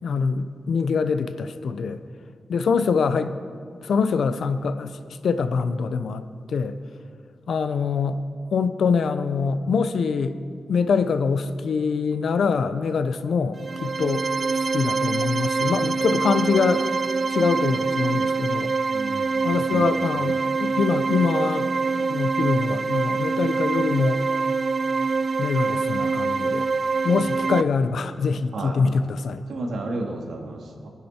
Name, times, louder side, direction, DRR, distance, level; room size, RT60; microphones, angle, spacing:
voice 1, 0.0-2.0 2.5-3.3 3.8-5.0 5.2-6.8 7.5-8.2 8.5-10.4 10.7-14.3 14.7-16.8 17.3-18.7 19.4-21.7 22.1-24.2 25.4-26.7 27.0-29.4, left 5 dB, 75° left, 11 dB, 0.8 m, -24 dB
sound 1, 13.5-27.6, right 4 dB, 40° right, 0.4 m, -25 dB
voice 2, 18.9-19.3 19.7-20.0 28.5-28.8 29.5-30.9, right 2 dB, 90° right, 1 dB, 2.3 m, -32 dB
26.0 x 10.0 x 4.4 m, 2.2 s
wide cardioid pair, 140°, 0 cm